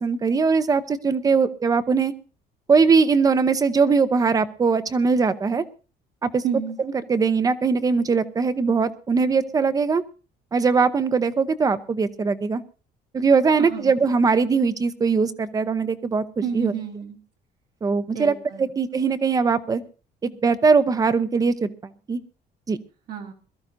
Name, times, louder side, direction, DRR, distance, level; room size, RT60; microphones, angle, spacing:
voice 1, 0.0-2.1 2.7-5.6 6.2-6.4 6.8-10.0 10.5-12.6 13.1-16.2 16.5-16.7 17.8-19.8 20.2-21.7 22.1-22.2 22.7-22.8, right 5 dB, 20° right, 13 dB, 0.7 m, -21 dB
voice 2, 6.4-6.8 13.6-14.0 16.4-17.2 18.1-18.7 23.1-23.3, right 7 dB, 60° right, 0 dB, 1.7 m, -30 dB
22.0 x 14.0 x 2.6 m, 0.35 s
cardioid pair, 180°, 17 cm